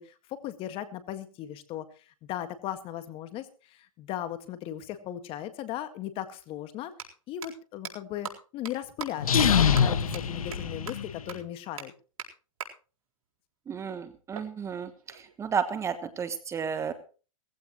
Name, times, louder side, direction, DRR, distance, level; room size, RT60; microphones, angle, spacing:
voice 1, 0.0-6.9 7.3-11.9, left 11 dB, 30° left, 11 dB, 1.8 m, -37 dB
sound 1, 5.7-5.8 6.8-7.0 7.4-7.5 7.8-7.9 8.2-8.3 8.7-8.8 9.0-9.1 9.4-9.5 9.8-9.9 10.1-10.2 10.5-10.6 10.9-11.0 11.3-11.4 11.8-11.9 12.2-12.3 12.6-12.7 14.3-15.4, right 7 dB, 85° right, 4.2 m, -39 dB
sound 2, 9.2-11.3, left 7 dB, 90° left, 1.6 m, -24 dB
voice 2, 13.7-16.9, right 6 dB, 15° right, 11 dB, 1.3 m, -32 dB
18.5 x 15.5 x 3.1 m, 0.36 s
hypercardioid pair, 135°, 18 cm